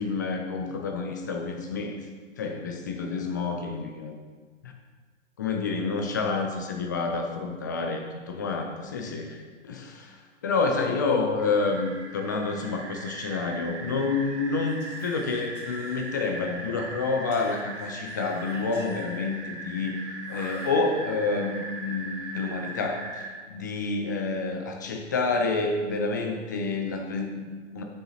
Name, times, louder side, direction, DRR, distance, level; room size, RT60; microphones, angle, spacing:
voice 1, 0.0-2.0 2.4-4.2 4.6-4.8 5.4-27.8, left 4 dB, 20° left, 3 dB, 0.3 m, -29 dB
sound 1, 11.4-23.3, right 3 dB, 50° right, 2.5 m, -39 dB
Whispering, 14.6-16.6 17.3-19.3 20.2-21.3, left 2 dB, 35° left, 2.4 m, -49 dB
12.5 x 7.1 x 2.8 m, 1.5 s
figure-of-eight pair, 120°, 37 cm